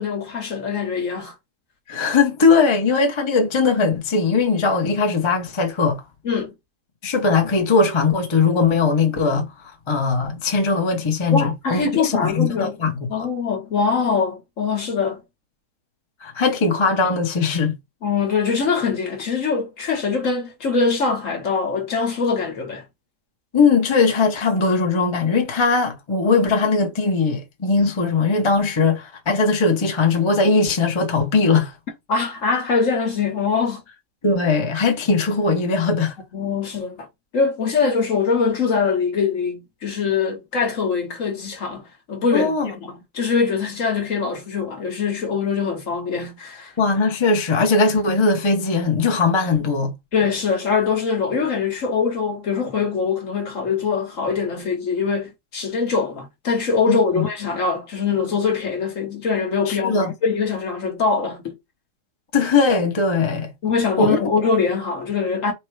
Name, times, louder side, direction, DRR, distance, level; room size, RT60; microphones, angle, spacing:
voice 1, 0.0-1.3 6.2-6.5 11.3-12.8 13.1-15.2 18.0-22.8 32.1-33.8 36.3-37.1 37.3-46.7 50.1-61.6 63.6-65.5, left 5 dB, 50° left, 1.4 m, -23 dB
voice 2, 1.9-6.0 7.0-13.3 16.2-17.7 23.5-31.7 34.2-36.1 42.3-42.7 46.8-49.9 56.9-57.3 59.7-60.1 62.3-63.5 64.0-64.2, left 4 dB, 25° left, 0.7 m, -19 dB
4.3 x 2.2 x 4.6 m
omnidirectional pair, 1.8 m